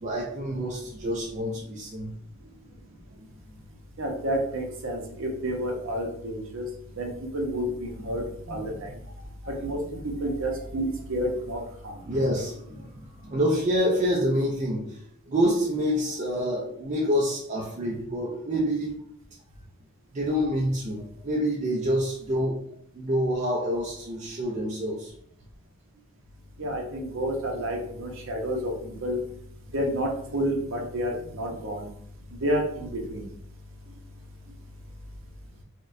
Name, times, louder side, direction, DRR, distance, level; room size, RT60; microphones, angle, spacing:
voice 1, 0.0-2.1 8.5-8.6 10.5-10.6 12.0-19.0 20.1-22.6 22.9-25.1, equal, 30° right, -2 dB, 0.3 m, -27 dB
voice 2, 4.0-9.0 9.5-12.0 26.6-29.2 29.7-31.9 32.3-33.3, equal, 60° right, 1 dB, 0.7 m, -30 dB
4.2 x 2.1 x 2.5 m, 0.68 s
head